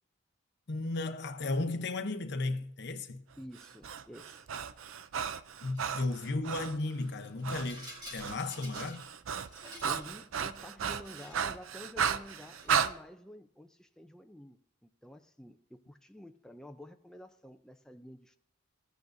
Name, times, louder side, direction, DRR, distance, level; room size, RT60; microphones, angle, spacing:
voice 1, 0.7-3.2 5.6-9.1, left 2 dB, 55° left, 0.7 m, -34 dB
voice 2, 3.4-4.5 9.8-18.4, equal, 5° left, 0.4 m, -50 dB
Breathing, 3.6-6.8 7.4-7.7 8.0-12.9, right 7 dB, 75° right, 0.5 m, -34 dB
Rattle, 5.7-6.1 7.1-9.1 9.4-10.1 10.9-11.6 12.2-12.8, equal, 20° right, 2.4 m, -50 dB
15.5 x 8.4 x 2.6 m
head